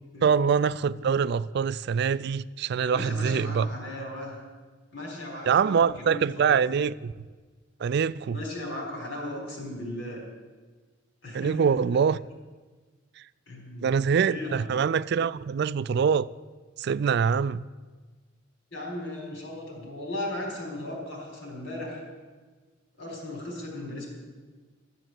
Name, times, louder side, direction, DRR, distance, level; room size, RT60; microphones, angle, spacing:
voice 1, 0.2-3.7 5.5-7.1 7.8-8.4 11.3-12.2 13.8-16.3 16.8-17.6, right 6 dB, 60° right, 0.3 m, -24 dB
voice 2, 2.8-4.4 4.9-6.6 8.3-10.2 11.2-12.0 13.5-14.0 14.3-14.6 18.7-22.0 23.0-24.1, left 1 dB, 80° left, 4.3 m, -37 dB
13.5 x 7.8 x 7.6 m
head